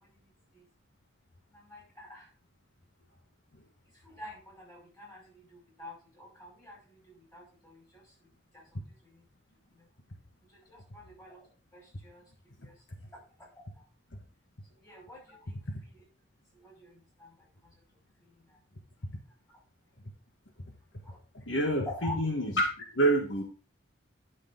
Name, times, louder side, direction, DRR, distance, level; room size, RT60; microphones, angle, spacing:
voice 1, 0.1-0.6 1.5-2.3 4.0-8.3 8.5-9.2 9.7-9.9 10.5-12.3 12.6-12.7 13.4-13.6 14.8-16.0 16.5-17.5 18.2-18.6 21.0-21.2 21.9-22.1, left 1 dB, 15° left, -3 dB, 5.4 m, -48 dB
voice 2, 21.5-22.6 22.9-23.4, right 1 dB, 80° left, 3 dB, 1.6 m, -27 dB
10.0 x 6.5 x 3.7 m, 0.33 s
head